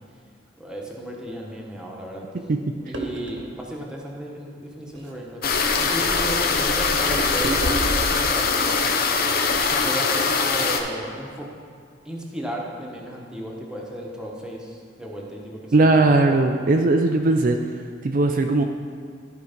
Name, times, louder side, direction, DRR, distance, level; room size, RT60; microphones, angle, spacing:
voice 1, 0.6-2.3 2.9-5.4 5.8-8.7 9.6-11.5 12.0-16.7, equal, 5° right, -2 dB, 1.2 m, -34 dB
sound 1, 2.9-3.5 4.9-5.2 7.1-7.9, right 2 dB, 75° right, 1.3 m, -31 dB
sound 2, 5.4-10.8, left 4 dB, 55° left, 0.7 m, -22 dB
voice 2, 15.7-17.6 18.0-18.6, right 2 dB, 45° right, 4 dB, 0.4 m, -18 dB
13.5 x 4.7 x 5.2 m, 2.1 s
head